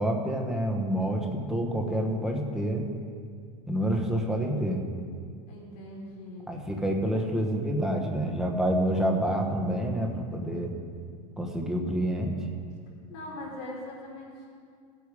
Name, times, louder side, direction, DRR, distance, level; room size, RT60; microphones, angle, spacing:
voice 1, 0.0-2.8 3.7-4.8 6.5-10.7 11.4-12.3, right 1 dB, 5° right, 1 dB, 1.1 m, -28 dB
voice 2, 5.5-6.5 13.1-14.5, left 1 dB, 55° left, -2 dB, 3.3 m, -41 dB
16.0 x 8.4 x 5.0 m, 2.2 s
supercardioid pair, 175°, 17 cm